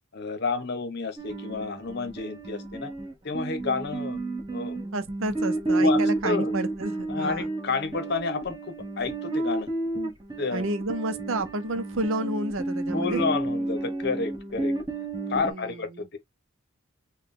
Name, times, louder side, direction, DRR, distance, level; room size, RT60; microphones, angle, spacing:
voice 1, 0.1-2.9 3.2-4.2 4.5-4.8 5.7-6.5 7.1-9.7 10.4-10.7 12.9-14.7 15.3-16.2, left 4 dB, 50° left, 0.8 m, -30 dB
sound 1, 1.2-15.5, right 2 dB, 20° right, 1.2 m, -31 dB
voice 2, 4.9-7.5 10.5-13.2 15.3-16.1, right 2 dB, 70° right, 0.7 m, -30 dB
3.9 x 2.3 x 3.7 m
head